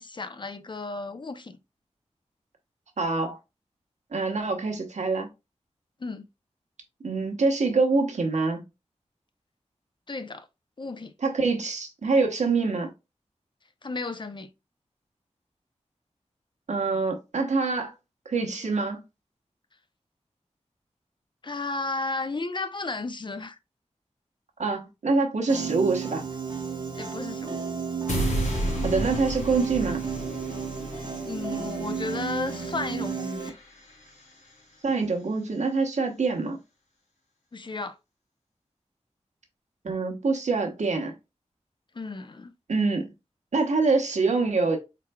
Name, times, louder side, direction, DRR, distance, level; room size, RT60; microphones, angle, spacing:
voice 1, 0.0-1.6 6.0-6.2 10.1-10.5 10.8-11.1 13.8-14.5 21.4-23.6 27.0-27.6 30.9-33.6 37.5-38.0 41.9-42.5, left 3 dB, 40° left, 0.5 m, -34 dB
voice 2, 3.0-3.4 4.1-5.3 7.0-8.6 11.2-12.9 16.7-17.9 18.2-19.0 24.6-26.2 28.8-30.0 34.8-36.6 39.8-41.1 42.7-43.1 43.5-44.8, right 3 dB, 75° right, 1.0 m, -25 dB
Piano, 25.5-33.5, right 6 dB, 40° right, 0.8 m, -33 dB
sound 1, 28.1-34.2, equal, 85° left, 1.4 m, -33 dB
4.3 x 3.9 x 2.2 m
wide cardioid pair, 85°, 12 cm